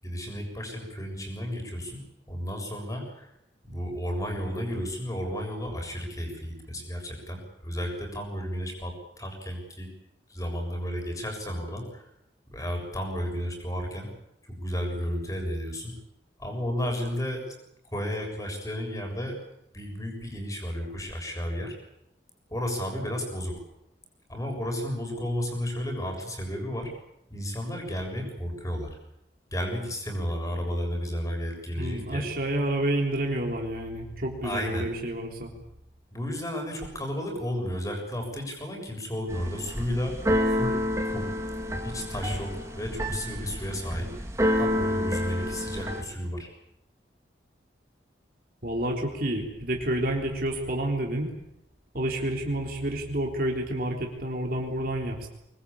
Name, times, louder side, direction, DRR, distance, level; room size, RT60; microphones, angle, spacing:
voice 1, 0.0-2.0 2.3-3.3 3.6-9.9 10.3-12.0 12.5-14.1 14.4-15.9 16.4-17.5 17.9-19.4 19.7-21.8 22.5-23.6 24.3-26.9 27.3-29.0 29.5-32.3 34.4-34.9 36.1-40.8 41.0-41.3 41.8-44.3 44.6-46.5, equal, 20° left, 2 dB, 7.0 m, -33 dB
voice 2, 31.8-35.5 48.6-51.3 51.9-55.3, right 1 dB, 50° right, 0 dB, 3.7 m, -29 dB
Keyboard (musical), 39.3-46.0, equal, 15° right, 3.1 m, -29 dB
25.0 x 21.0 x 8.7 m, 0.83 s
head